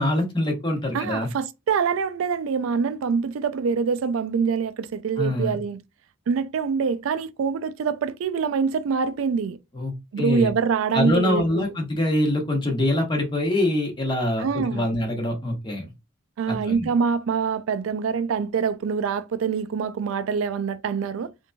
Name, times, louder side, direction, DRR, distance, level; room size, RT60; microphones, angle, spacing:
voice 1, 0.0-1.3 5.2-5.6 9.7-10.5 10.9-15.9 16.5-16.9, left 1 dB, 25° left, 0.9 m, -24 dB
voice 2, 0.9-5.8 6.3-9.6 10.1-11.7 14.4-14.9 16.4-21.3, right 6 dB, 80° right, 0.3 m, -25 dB
3.0 x 2.5 x 2.2 m
head